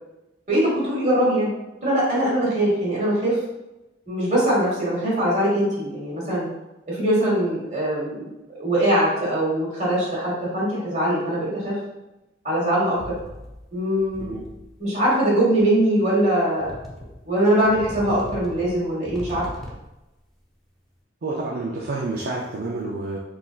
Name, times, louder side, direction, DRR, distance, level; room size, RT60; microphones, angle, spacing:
voice 1, 0.5-1.5 1.8-3.4 4.1-6.5 6.9-11.8 12.4-13.2 13.7-14.3 14.8-16.7 17.2-19.4, right 1 dB, 40° right, -6 dB, 1.5 m, -22 dB
sound 1, 12.9-13.7 14.0-14.7 15.6-15.7 16.6-17.3 17.6-20.0, left 1 dB, ahead, 0.6 m, -39 dB
voice 2, 21.2-23.2, right 2 dB, 55° right, -3 dB, 0.5 m, -29 dB
3.9 x 2.5 x 2.4 m, 0.97 s
head